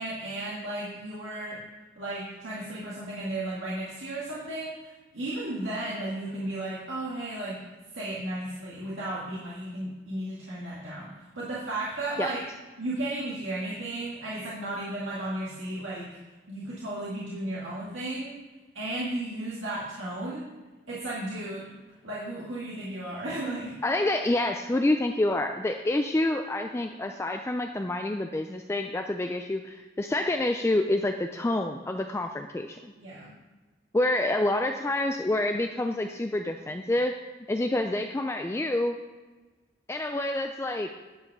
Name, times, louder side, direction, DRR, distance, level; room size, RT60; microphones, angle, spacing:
voice 1, 0.0-1.6 2.0-7.6 7.9-12.4 12.8-16.1 16.5-18.3 18.7-20.5 20.9-21.7 22.0-23.8 33.0-33.3, right 1 dB, 90° right, -7 dB, 1.9 m, -34 dB
voice 2, 23.8-32.9 33.9-37.1 37.5-39.0 39.9-40.9, left 1 dB, 15° left, 5 dB, 0.3 m, -27 dB
9.9 x 5.4 x 6.0 m, 1.3 s
head